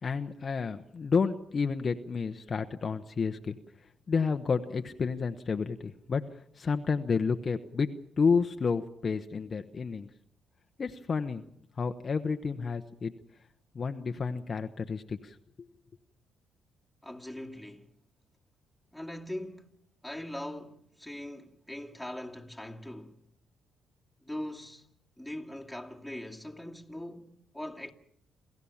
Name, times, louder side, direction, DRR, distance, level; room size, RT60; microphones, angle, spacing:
voice 1, 0.0-3.5 4.1-7.9 8.2-10.1 10.8-11.4 11.8-13.1 13.7-15.7, left 5 dB, 40° left, 1.0 m, -30 dB
voice 2, 17.0-17.9 18.9-19.7 20.0-23.2 24.2-24.9 25.2-27.9, left 1 dB, ahead, 2.3 m, -41 dB
28.0 x 14.5 x 7.2 m
cardioid pair, 90°, 0 cm